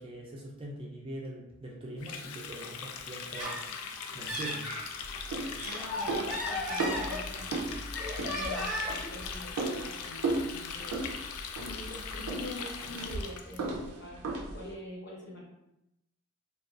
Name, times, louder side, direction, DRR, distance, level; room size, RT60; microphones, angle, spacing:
voice 1, 0.0-3.9 4.1-4.7, right 1 dB, 25° right, -3 dB, 0.3 m, -42 dB
Water tap faucet, 2.0-13.6, left 6 dB, 90° left, 0.3 m, -41 dB
Laughter, 3.1-4.8 5.4-7.6 7.9-9.1, left 1 dB, ahead, 0.8 m, -36 dB
sound 1, 5.0-14.7, right 3 dB, 90° right, 0.4 m, -37 dB
voice 2, 5.6-7.7 8.2-11.1 11.6-15.4, left 1 dB, 50° left, -3 dB, 0.6 m, -45 dB
2.3 x 2.3 x 2.4 m, 0.88 s
head